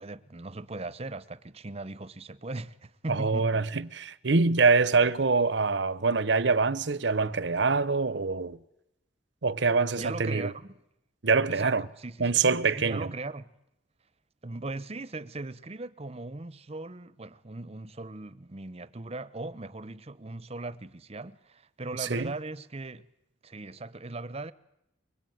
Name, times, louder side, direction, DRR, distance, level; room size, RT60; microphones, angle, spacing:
voice 1, 0.0-3.6 10.0-10.8 11.5-13.5 14.4-23.1 23.4-24.5, right 2 dB, 35° right, 0.9 m, -39 dB
voice 2, 3.1-8.6 9.4-10.5 11.2-11.9 12.2-13.1 22.0-22.3, right 4 dB, 65° right, 0.9 m, -25 dB
23.5 x 23.0 x 9.4 m
head